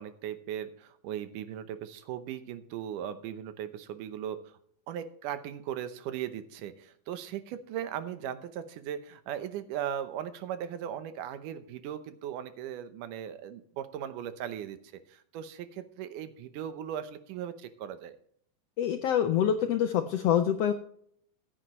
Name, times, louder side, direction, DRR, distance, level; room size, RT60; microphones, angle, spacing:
voice 1, 0.0-4.5 4.9-14.8 15.1-18.2, right 10 dB, 85° right, 11 dB, 2.4 m, -38 dB
voice 2, 18.8-20.7, left 9 dB, 80° left, 7 dB, 1.4 m, -26 dB
14.5 x 9.0 x 3.1 m, 0.64 s
omnidirectional pair, 3.7 m